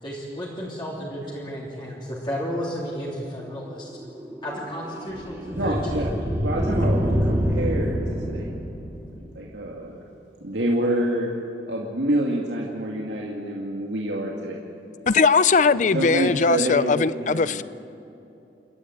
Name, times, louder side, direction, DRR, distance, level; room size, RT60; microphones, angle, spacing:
voice 1, 0.0-3.9 4.4-6.0, equal, 25° left, -6 dB, 3.3 m, -32 dB
sound 1, 3.7-9.3, equal, 15° right, 2.8 m, -26 dB
voice 2, 5.6-6.1 6.4-8.5 9.4-10.0 10.4-11.3 11.7-14.6 15.7-17.6, right 1 dB, 85° right, -2 dB, 2.4 m, -27 dB
voice 3, 15.1-17.6, left 4 dB, 45° left, 17 dB, 0.5 m, -19 dB
29.0 x 13.0 x 9.2 m, 2.8 s
head